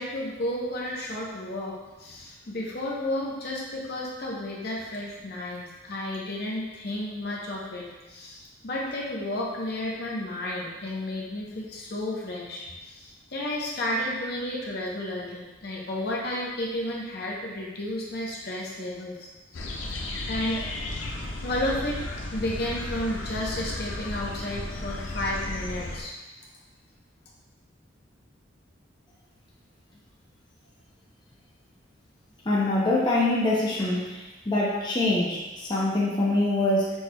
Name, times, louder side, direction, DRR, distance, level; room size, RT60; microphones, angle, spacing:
voice 1, 0.0-19.3 20.2-20.6 21.4-22.0 22.3-26.1, left 1 dB, 55° left, -3 dB, 0.8 m, -32 dB
sound 1, 19.5-26.0, left 2 dB, 90° left, 0.6 m, -34 dB
voice 2, 32.4-36.9, left 2 dB, 25° left, -6 dB, 0.6 m, -24 dB
6.1 x 3.3 x 2.2 m, 1.1 s
head